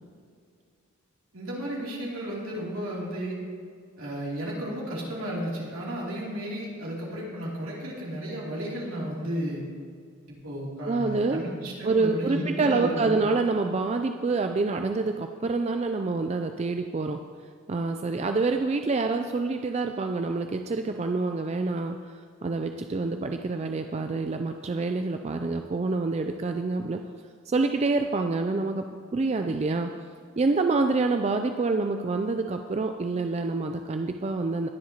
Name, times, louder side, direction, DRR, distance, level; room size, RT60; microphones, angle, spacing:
voice 1, 1.3-3.4 4.0-9.6 10.3-13.2, equal, 75° right, -5 dB, 2.9 m, -33 dB
voice 2, 10.9-11.4 11.8-17.2 17.7-22.0 22.4-27.0 27.5-28.8 29.1-29.9 30.4-34.7, right 3 dB, 30° right, 6 dB, 0.3 m, -27 dB
20.0 x 7.5 x 2.9 m, 2.1 s
head